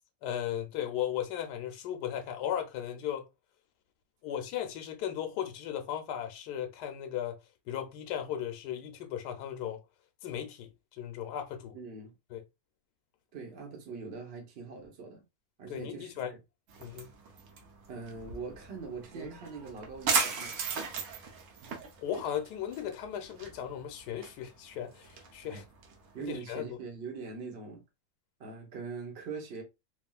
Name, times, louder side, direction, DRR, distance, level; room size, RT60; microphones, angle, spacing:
voice 1, 0.2-3.3 4.2-7.4 7.7-9.8 10.2-11.8 12.3-12.4 15.7-16.3 16.8-17.1 22.0-25.6 26.2-26.7, left 10 dB, 85° left, 1.2 m, -36 dB
voice 2, 11.7-12.1 13.3-15.2 15.6-16.4 17.9-20.5 25.4-25.6 26.1-27.8 28.4-29.6, right 4 dB, 45° right, 1.0 m, -42 dB
sound 1, 16.7-26.4, right 5 dB, 65° right, 1.1 m, -37 dB
3.4 x 2.4 x 2.2 m
omnidirectional pair, 1.7 m